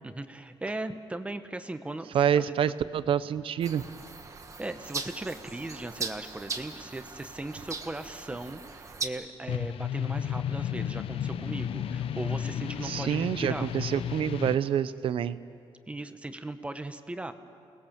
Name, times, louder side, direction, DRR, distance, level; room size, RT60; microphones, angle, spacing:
voice 1, 0.0-2.6 4.6-13.7 15.9-17.3, right 2 dB, 10° right, 9 dB, 0.9 m, -38 dB
voice 2, 2.1-3.9 12.8-15.4, right 9 dB, 65° right, 14 dB, 0.7 m, -27 dB
sound 1, 3.6-9.1, right 4 dB, 30° right, 1.5 m, -39 dB
sound 2, 9.5-14.6, left 9 dB, 70° left, 0.8 m, -33 dB
28.5 x 20.0 x 7.3 m, 2.3 s
wide cardioid pair, 150°, 10 cm